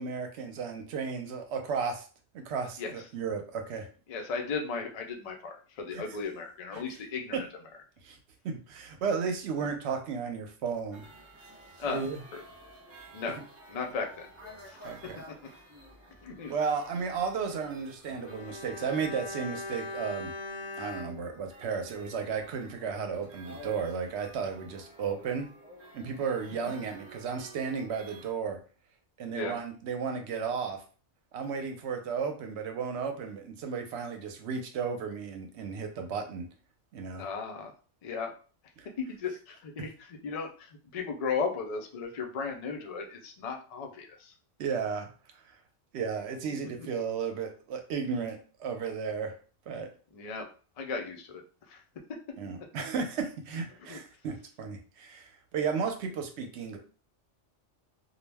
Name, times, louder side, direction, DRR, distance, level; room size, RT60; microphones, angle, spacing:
voice 1, 0.0-2.0 2.3-3.9 5.9-6.0 7.3-7.4 8.0-8.2 8.4-11.0 11.9-12.2 14.8-15.2 16.5-20.3 20.8-25.5 25.9-28.6 29.2-30.8 31.3-36.5 36.9-37.2 38.8-38.9 44.6-45.1 45.9-49.3 49.7-49.9 52.4-56.8, right 6 dB, 70° right, 4 dB, 0.8 m, -34 dB
voice 2, 4.1-7.5 11.8-12.0 12.3-12.4 13.1-13.4 13.7-14.3 14.7-15.1 16.2-16.5 29.3-29.6 37.2-37.7 38.0-38.3 39.0-44.3 50.1-50.5 50.8-51.8 53.9-54.0, left 5 dB, 75° left, 2 dB, 0.3 m, -36 dB
sound 1, 10.9-28.3, right 1 dB, 15° right, 0.6 m, -52 dB
Bowed string instrument, 18.0-22.5 22.8-22.9, left 2 dB, 90° left, 1.0 m, -41 dB
2.3 x 2.0 x 3.3 m, 0.38 s
omnidirectional pair, 1.3 m